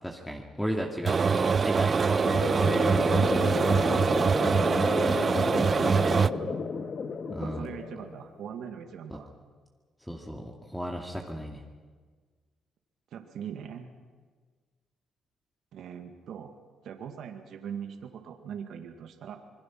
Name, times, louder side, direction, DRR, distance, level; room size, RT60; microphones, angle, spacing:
voice 1, 0.0-3.2 7.3-7.6 9.1-9.2 10.0-11.6, equal, 5° left, 0 dB, 2.3 m, -35 dB
sound 1, 1.1-6.3, right 5 dB, 40° right, 0.6 m, -24 dB
sound 2, 2.2-8.3, left 5 dB, 50° left, 1.7 m, -32 dB
voice 2, 3.7-4.7 5.4-6.6 7.4-9.3 13.1-13.9 15.7-16.5 16.8-19.4, right 8 dB, 75° right, 5 dB, 2.2 m, -41 dB
26.5 x 21.5 x 6.2 m, 1.5 s
cardioid pair, 90°, 0 cm